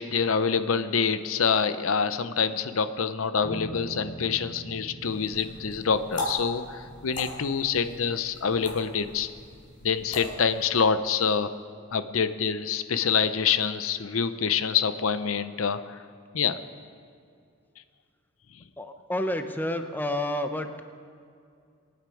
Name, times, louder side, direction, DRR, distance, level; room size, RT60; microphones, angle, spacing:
voice 1, 0.0-9.3 9.8-11.5 11.9-16.0 16.3-16.6, left 6 dB, 85° left, 12 dB, 0.7 m, -26 dB
sound 1, 3.4-10.0, right 1 dB, 70° left, 1.5 m, -45 dB
sound 2, 5.0-10.8, left 1 dB, 40° left, 4.8 m, -39 dB
voice 2, 18.8-20.7, left 1 dB, 10° left, 7 dB, 0.8 m, -29 dB
24.5 x 9.4 x 4.9 m, 2.3 s
head